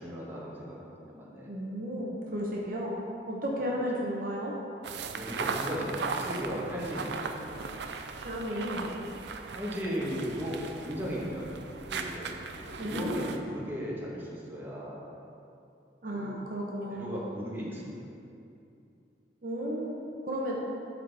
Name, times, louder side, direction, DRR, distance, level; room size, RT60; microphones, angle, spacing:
voice 1, 0.0-1.5 5.1-7.5 8.8-8.9 9.5-15.1 16.1-16.4 16.9-18.0, equal, 10° right, -6 dB, 1.2 m, -37 dB
voice 2, 1.5-3.0 3.3-4.5 8.2-8.9 12.8-13.3 16.0-17.1 19.4-20.6, equal, 50° right, -3 dB, 0.8 m, -33 dB
sound 1, 4.8-13.4, right 4 dB, 70° right, 0.5 m, -38 dB
12.0 x 4.0 x 3.4 m, 2.6 s
head